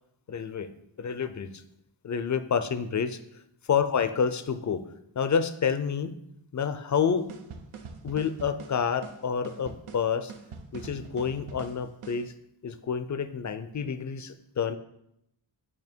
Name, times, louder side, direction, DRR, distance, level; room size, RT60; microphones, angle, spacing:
voice 1, 0.3-0.7 1.0-1.6 2.0-3.2 3.7-4.8 5.1-6.1 6.5-7.3 8.0-10.3 10.7-12.3 12.6-14.8, left 6 dB, 40° left, 11 dB, 0.4 m, -28 dB
sound 1, 7.3-12.3, right 5 dB, 80° right, 0.8 m, -44 dB
8.3 x 2.9 x 4.4 m, 0.78 s
wide cardioid pair, 85°, 50 cm